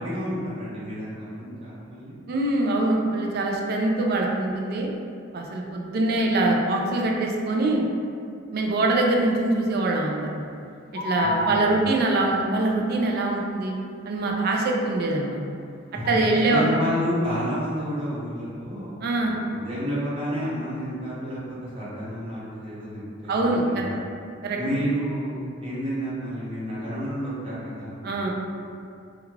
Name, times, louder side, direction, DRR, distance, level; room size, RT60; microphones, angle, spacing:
voice 1, 0.0-2.1 11.2-11.9 15.9-23.8 24.6-28.3, equal, 30° right, -10 dB, 0.8 m, -30 dB
voice 2, 2.3-4.9 5.3-7.9 8.5-10.5 11.0-13.7 14.0-15.4 16.1-16.7 19.0-19.3 23.3-23.9 24.4-24.6 28.0-28.3, right 2 dB, 50° right, 0 dB, 0.3 m, -23 dB
sound 1, 10.9-12.3 16.0-16.3, left 1 dB, 50° left, 0.4 m, -29 dB
2.3 x 2.3 x 3.1 m, 2.4 s
head